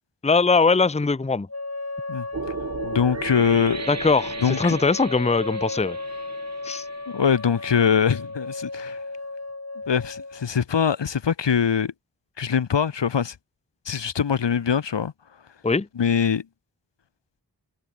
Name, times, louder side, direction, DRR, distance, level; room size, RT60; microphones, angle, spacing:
voice 1, 0.2-1.5 3.9-6.0 6.6-6.8 15.6-15.9, left 4 dB, 15° left, 0.7 m, -21 dB
sound 1, 1.5-10.5, left 3 dB, 35° left, 3.4 m, -34 dB
sound 2, 2.3-7.5, right 5 dB, 40° right, 0.9 m, -36 dB
voice 2, 2.8-3.8 4.4-4.8 7.1-9.0 9.9-11.9 12.4-13.4 13.8-15.1 15.9-16.5, left 7 dB, 80° left, 1.1 m, -22 dB
wide cardioid pair, 75°, 43 cm